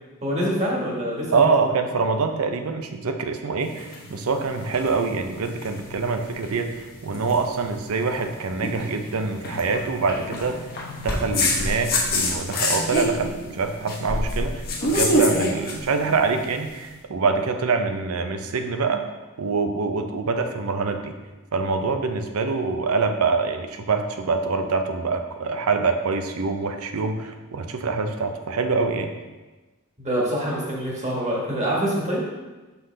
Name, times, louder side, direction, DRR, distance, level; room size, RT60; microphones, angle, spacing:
voice 1, 0.2-1.5 30.0-32.2, equal, 35° right, -4 dB, 1.6 m, -25 dB
voice 2, 1.3-10.7 11.0-19.0 19.4-21.1 21.5-29.1, right 4 dB, 80° right, 6 dB, 0.6 m, -25 dB
sound 1, 3.6-16.8, left 1 dB, 45° left, 1.0 m, -27 dB
5.6 x 5.6 x 3.3 m, 1.2 s
head